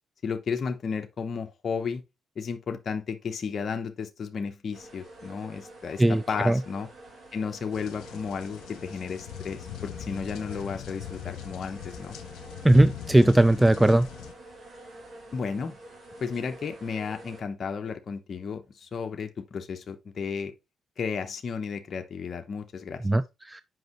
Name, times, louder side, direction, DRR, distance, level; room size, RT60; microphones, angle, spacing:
voice 1, 0.2-2.0 2.4-6.9 7.3-12.2 15.3-15.8 16.2-20.5 21.0-23.1, left 5 dB, 45° left, 0.8 m, -33 dB
sound 1, 4.7-17.4, right 1 dB, 55° right, 3.1 m, -48 dB
voice 2, 6.0-6.6 12.6-14.1 23.0-23.6, right 1 dB, 10° right, 0.3 m, -19 dB
sound 2, 7.7-14.3, left 11 dB, 85° left, 0.9 m, -41 dB
7.8 x 5.3 x 3.0 m
cardioid pair, 90°, 0 cm